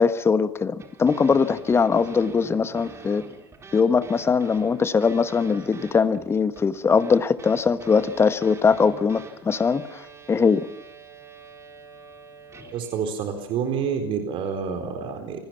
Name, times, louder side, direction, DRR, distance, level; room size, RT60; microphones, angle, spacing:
voice 1, 0.0-3.3 3.7-10.0 10.3-10.7, left 5 dB, 20° left, 13 dB, 1.4 m, -21 dB
sound 1, 0.8-13.0, right 4 dB, 20° right, 4.1 m, -45 dB
voice 2, 12.7-15.4, right 6 dB, 45° right, 5 dB, 4.1 m, -28 dB
27.5 x 20.0 x 5.8 m, 0.89 s
figure-of-eight pair, 80°, 12 cm